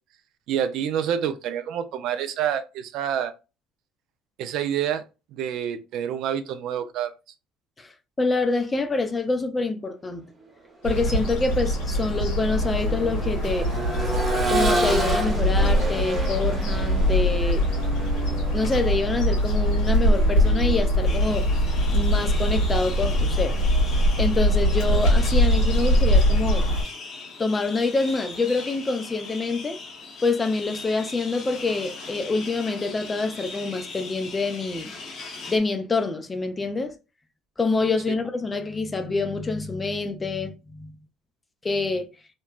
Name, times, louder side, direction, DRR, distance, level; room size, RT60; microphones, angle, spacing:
voice 1, 0.5-3.3 4.4-5.0 5.3-7.1, right 9 dB, 70° right, 0.3 m, -27 dB
voice 2, 8.2-10.3 10.8-13.7 14.5-17.6 18.5-21.5 21.9-23.6 24.2-26.7 27.4-29.8 30.2-34.9 35.5-36.9 37.6-41.0 41.6-42.1, left 3 dB, 20° left, 0.5 m, -26 dB
sound 1, 10.8-26.8, equal, 85° left, 1.4 m, -22 dB
Accelerating revving vroom, 10.9-11.0 11.5-21.4 23.1-23.2, right 2 dB, 30° right, 0.9 m, -31 dB
sound 2, 21.0-35.6, left 3 dB, 55° left, 1.0 m, -39 dB
3.0 x 2.2 x 2.3 m
supercardioid pair, 90°, 0 cm